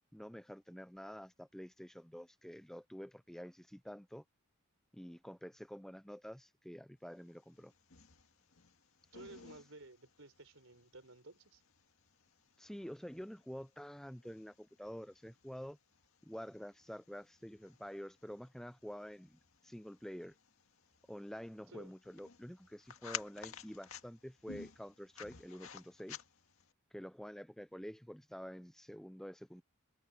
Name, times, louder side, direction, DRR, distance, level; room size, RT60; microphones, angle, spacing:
voice 1, 0.1-4.2 4.9-7.7 12.6-15.8 16.2-20.4 21.1-26.2 26.9-29.6, equal, ahead, 0.5 m, -48 dB
sound 1, 7.3-26.7, left 7 dB, 75° left, 2.0 m, -54 dB
voice 2, 9.1-11.6 21.7-21.9, right 2 dB, 65° right, 5.3 m, -55 dB
head